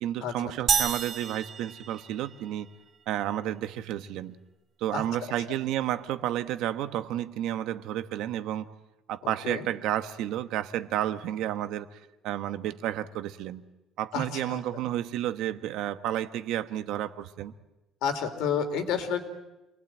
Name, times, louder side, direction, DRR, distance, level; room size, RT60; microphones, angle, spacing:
voice 1, 0.0-2.7 3.1-4.4 4.8-8.7 9.1-13.6 14.0-17.5, right 12 dB, 70° right, 10 dB, 1.2 m, -31 dB
sound 1, 0.7-2.6, right 6 dB, 35° right, 1.3 m, -29 dB
voice 2, 9.2-9.6 14.1-14.6 18.0-19.2, left 7 dB, 75° left, 6 dB, 3.3 m, -30 dB
27.5 x 20.0 x 9.0 m, 1.0 s
cardioid pair, 165°, 0 cm